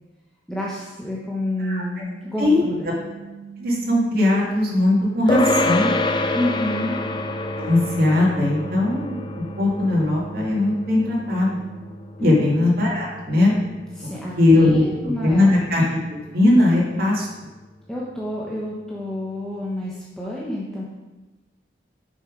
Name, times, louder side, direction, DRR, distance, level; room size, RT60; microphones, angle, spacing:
voice 1, 0.5-2.9 6.3-7.0 12.2-12.5 14.0-15.5 17.9-20.8, left 1 dB, 5° left, -6 dB, 0.9 m, -29 dB
sound 1, 2.0-11.8, right 6 dB, 30° right, 2.4 m, -41 dB
voice 2, 3.6-5.9 7.6-9.2 9.6-11.5 12.2-13.5 14.4-17.3, left 2 dB, 55° right, -4 dB, 2.0 m, -19 dB
sound 2, 5.3-15.0, left 2 dB, 25° left, 0.4 m, -28 dB
7.2 x 5.6 x 5.0 m, 1.2 s
head